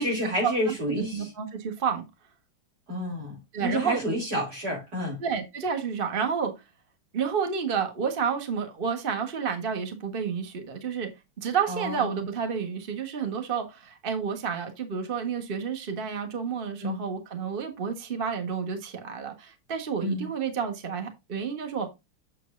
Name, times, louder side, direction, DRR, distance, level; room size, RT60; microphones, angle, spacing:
voice 1, 0.0-1.3 2.9-5.2 11.7-12.2 16.8-17.0 20.0-20.3, equal, 45° right, 4.1 m, -29 dB
voice 2, 0.9-2.1 3.5-4.0 5.2-6.5 7.1-11.1 11.4-21.9, right 6 dB, 30° right, 1.4 m, -30 dB
7.6 x 7.5 x 2.6 m
omnidirectional pair, 2.3 m